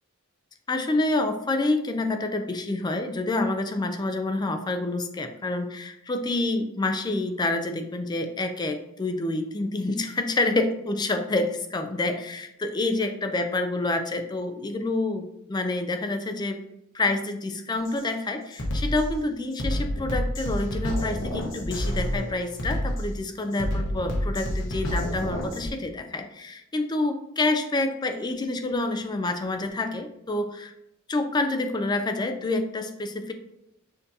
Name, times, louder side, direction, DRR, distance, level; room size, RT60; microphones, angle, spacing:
voice 1, 0.7-16.6 16.9-30.7 31.1-33.3, left 2 dB, 20° left, 6 dB, 0.4 m, -28 dB
Drum kit, 17.8-18.0 18.5-25.7, equal, 60° left, 0.9 m, -29 dB
6.4 x 2.7 x 2.6 m, 0.81 s
head